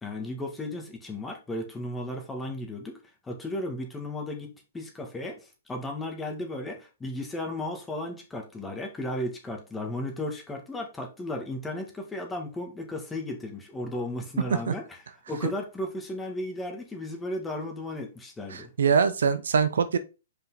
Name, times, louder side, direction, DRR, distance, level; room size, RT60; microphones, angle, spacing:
voice 1, 0.0-3.0 3.2-14.8 15.3-18.7, left 1 dB, 10° left, 1.9 m, -35 dB
voice 2, 18.5-20.0, right 6 dB, 65° right, 0.7 m, -24 dB
5.7 x 5.2 x 4.0 m
figure-of-eight pair, 110°, 0 cm